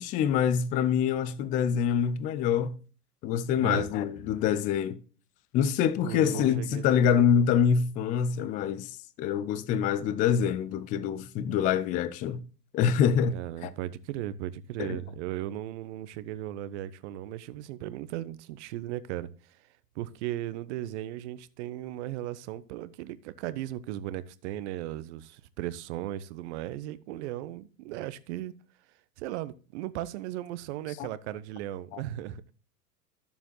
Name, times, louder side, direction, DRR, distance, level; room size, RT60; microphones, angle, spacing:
voice 1, 0.0-2.8 3.2-5.0 5.5-8.9 9.2-12.4 12.7-13.4 13.6-13.7 14.8-15.0 31.0-31.1 31.9-32.0, left 8 dB, 20° left, 0.4 m, -25 dB
voice 2, 6.0-7.2 13.3-19.6 19.9-28.5 29.2-32.4, right 13 dB, 45° right, 0.9 m, -36 dB
13.0 x 7.1 x 3.0 m
figure-of-eight pair, 95°, 47 cm